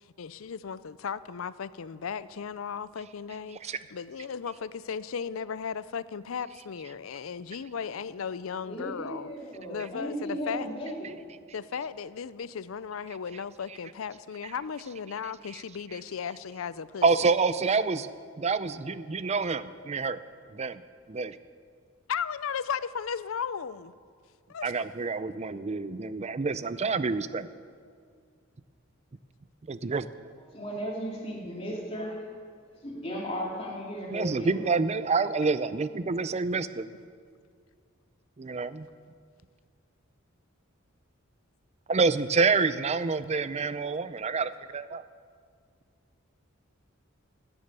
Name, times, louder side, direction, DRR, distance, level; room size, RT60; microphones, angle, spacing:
voice 1, 0.2-9.3 9.7-10.7 11.5-17.1 22.1-23.9 24.5-24.7, left 6 dB, 85° left, 17 dB, 0.5 m, -36 dB
voice 2, 8.7-11.1 30.5-32.3 32.8-34.6, equal, 30° left, -3 dB, 3.0 m, -35 dB
voice 3, 17.0-18.1 18.4-20.2 20.5-20.8 21.1-21.4 24.6-27.5 29.7-30.1 34.1-36.9 38.4-38.9 41.9-45.0, right 4 dB, 35° right, 14 dB, 0.5 m, -28 dB
16.5 x 9.9 x 6.8 m, 2.1 s
head